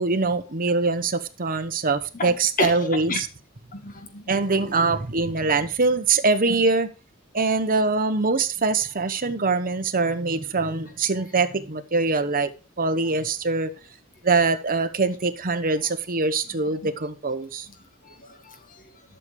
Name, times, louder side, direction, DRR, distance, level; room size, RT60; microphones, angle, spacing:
voice 1, 0.0-3.3 4.3-6.9 7.3-12.5 12.8-13.7 14.2-17.7, right 3 dB, 40° right, 1.1 m, -23 dB
voice 2, 2.1-3.2 3.7-4.8 16.6-16.9 18.0-18.8, left 3 dB, 40° left, 1.9 m, -32 dB
11.5 x 6.8 x 4.8 m
head